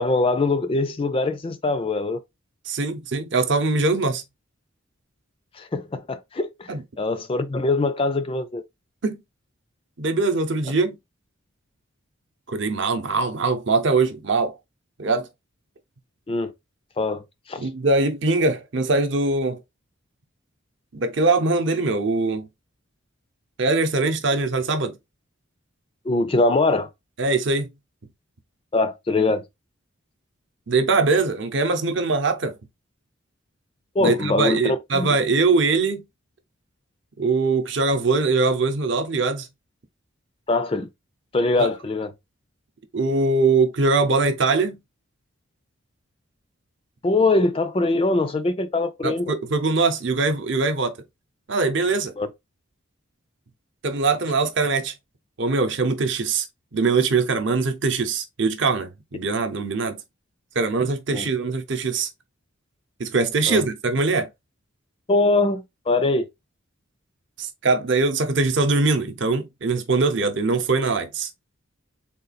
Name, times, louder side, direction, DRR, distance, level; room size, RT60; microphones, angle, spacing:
voice 1, 0.0-2.2 5.6-8.6 16.3-16.5 17.0-17.2 17.5-17.7 26.1-26.9 28.7-29.4 34.0-35.1 40.5-40.9 41.3-42.1 47.0-49.3 52.2-52.3 61.1-61.3 63.5-63.7 65.1-66.3, left 2 dB, 25° left, 0.3 m, -22 dB
voice 2, 2.7-4.2 6.7-6.8 9.0-9.2 10.0-11.0 12.5-14.5 15.0-15.3 17.6-19.6 20.9-22.5 23.6-25.0 27.2-27.7 30.7-32.5 34.0-36.0 37.2-39.5 41.6-41.7 42.9-44.8 49.0-50.9 51.5-52.1 53.8-54.9 55.4-56.5 56.7-60.0 60.6-62.1 63.0-64.3 67.4-71.3, right 3 dB, 60° right, 0.7 m, -22 dB
3.8 x 2.3 x 4.0 m
head